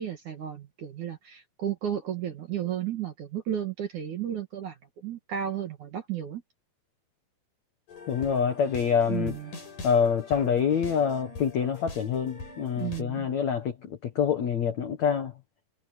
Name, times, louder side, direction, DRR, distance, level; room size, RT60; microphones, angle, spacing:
voice 1, 0.0-4.8 5.0-6.4 9.1-9.5 12.8-13.3, right 10 dB, 55° right, 2.4 m, -33 dB
sound 1, 7.9-13.0, left 3 dB, 40° left, 6.3 m, -43 dB
voice 2, 8.1-9.4 9.8-15.3, left 7 dB, 80° left, 1.6 m, -26 dB
omnidirectional pair, 5.7 m